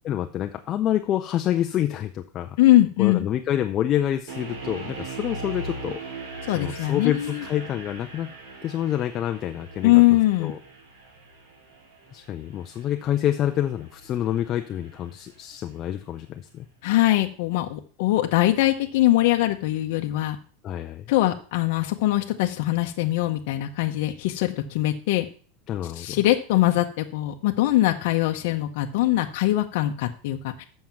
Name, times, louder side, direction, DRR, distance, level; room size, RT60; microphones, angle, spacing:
voice 1, 0.1-2.6 3.0-6.0 6.5-8.3 8.6-10.0 10.4-10.6 12.1-16.7 20.6-21.1 25.7-26.2, left 11 dB, 25° left, 6 dB, 0.5 m, -27 dB
voice 2, 2.6-3.3 6.4-7.4 9.8-10.5 16.8-20.4 21.1-25.2 26.0-30.6, left 15 dB, 55° left, 4 dB, 0.8 m, -22 dB
sound 1, 4.3-15.3, right 3 dB, 65° right, 2.8 m, -40 dB
7.5 x 6.4 x 5.9 m, 0.43 s
supercardioid pair, 165°, 0 cm